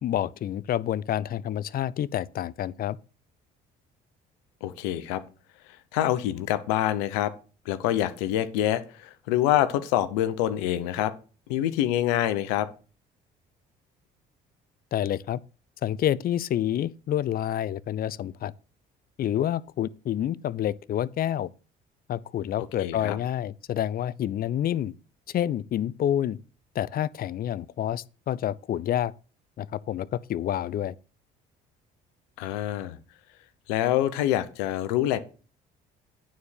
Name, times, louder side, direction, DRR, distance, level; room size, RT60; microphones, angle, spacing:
voice 1, 0.0-3.0 14.9-15.4 15.8-18.5 19.2-21.5 22.1-24.9 25.3-26.4 26.8-29.1 29.6-30.9, left 11 dB, 50° left, 0.5 m, -28 dB
voice 2, 4.6-5.2 5.9-7.3 7.7-11.1 11.5-12.7 22.8-23.2 32.4-33.0 33.7-35.2, left 12 dB, 90° left, 0.8 m, -26 dB
9.4 x 4.3 x 6.6 m
supercardioid pair, 70°, 20 cm